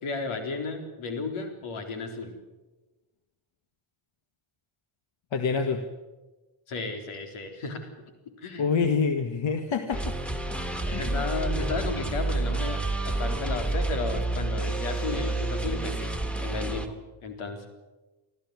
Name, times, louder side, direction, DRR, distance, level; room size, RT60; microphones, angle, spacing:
voice 1, 0.0-2.4 6.7-7.9 8.4-8.7 10.6-16.1 16.4-17.7, left 3 dB, 80° left, 6 dB, 4.0 m, -34 dB
voice 2, 5.3-5.8 8.6-10.1 10.9-11.2, left 5 dB, 65° left, 8 dB, 1.8 m, -26 dB
sound 1, 9.9-16.9, right 2 dB, ahead, 2.5 m, -29 dB
25.0 x 14.5 x 9.7 m, 1.2 s
supercardioid pair, 60°, 50 cm